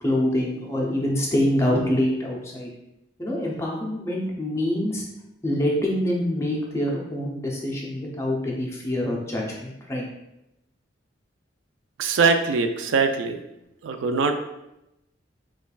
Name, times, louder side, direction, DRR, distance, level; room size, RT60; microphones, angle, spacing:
voice 1, 0.0-2.7 3.2-5.0 5.4-10.0, left 1 dB, 15° left, -3 dB, 0.6 m, -25 dB
voice 2, 12.0-13.4 13.8-14.3, right 4 dB, 80° right, 7 dB, 0.4 m, -22 dB
5.1 x 2.4 x 2.3 m, 0.88 s
head